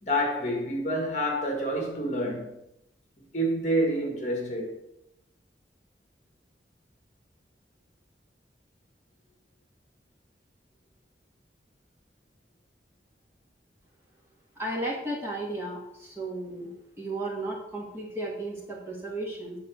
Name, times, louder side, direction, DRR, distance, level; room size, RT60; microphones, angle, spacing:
voice 1, 0.0-2.5 3.3-4.8, equal, 40° left, 1.9 m, -28 dB
voice 2, 14.6-19.6, right 1 dB, 15° right, 2.2 m, -34 dB
9.8 x 4.1 x 6.6 m
head